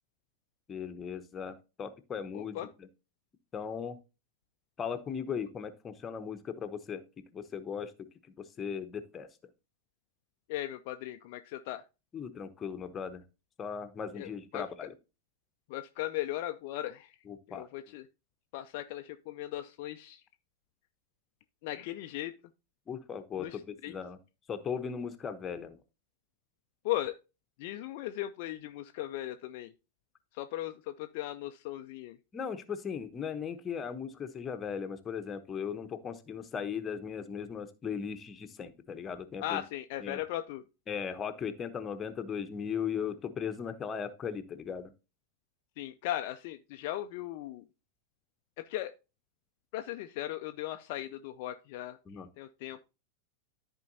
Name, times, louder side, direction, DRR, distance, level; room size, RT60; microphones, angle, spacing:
voice 1, 0.7-2.6 3.5-4.0 4.8-7.0 7.3-7.9 8.4-9.3 12.1-13.2 13.6-14.9 17.3-17.7 22.9-24.2 24.5-25.8 32.3-39.6 40.0-40.2 40.9-44.9 52.1-52.3, left 7 dB, 20° left, 9 dB, 1.0 m, -37 dB
voice 2, 2.3-2.7 10.5-11.8 14.1-14.6 15.7-17.2 17.5-18.1 18.5-20.2 21.6-22.3 23.4-24.0 26.8-27.1 27.6-29.7 30.3-32.2 39.4-40.6 45.8-47.7 48.6-48.9 49.7-52.0 52.4-52.8, left 14 dB, 50° left, 7 dB, 0.5 m, -37 dB
13.5 x 4.5 x 2.7 m, 0.29 s
figure-of-eight pair, 90°, 0 cm